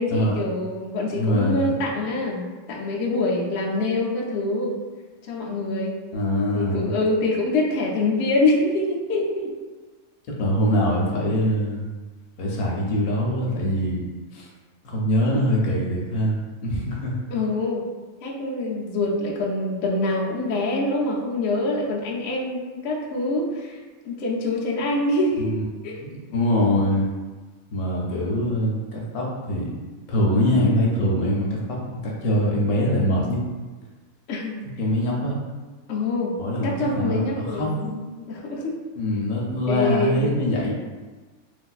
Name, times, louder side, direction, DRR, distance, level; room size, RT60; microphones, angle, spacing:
voice 1, 0.0-4.7 5.3-5.9 6.5-9.5 17.3-17.8 18.2-23.8 24.0-25.5 25.8-26.0 34.3-34.6 35.9-36.3 36.6-38.8 39.7-40.2, left 2 dB, 65° left, -4 dB, 0.9 m, -25 dB
voice 2, 1.1-1.8 6.1-6.9 10.4-11.8 12.4-14.0 14.3-14.5 14.8-17.1 25.5-25.6 26.0-27.1 27.7-29.7 30.1-33.4 34.8-35.3 36.4-37.7 39.0-40.7, equal, 90° left, -3 dB, 1.1 m, -23 dB
3.2 x 2.5 x 2.3 m, 1.3 s
omnidirectional pair, 1.5 m